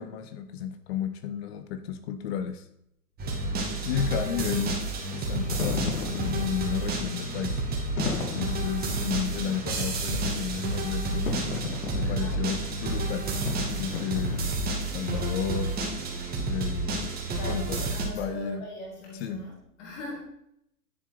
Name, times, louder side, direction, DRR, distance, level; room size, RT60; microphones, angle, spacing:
voice 1, 0.0-2.6 3.8-4.8 5.1-7.6 8.4-11.3 11.9-13.3 13.8-14.6 14.9-15.7 16.5-17.1 17.4-17.8 18.1-18.6 19.2-19.5, left 8 dB, 40° left, 10 dB, 1.2 m, -32 dB
sound 1, 3.2-18.0, right 2 dB, 20° right, 2.1 m, -30 dB
Wind / Fire, 5.3-14.8, left 5 dB, 60° left, 2.1 m, -36 dB
voice 2, 12.0-12.4 17.3-20.2, left 1 dB, 5° left, -1 dB, 0.3 m, -41 dB
10.5 x 7.5 x 4.0 m, 0.76 s
hypercardioid pair, 115°, 47 cm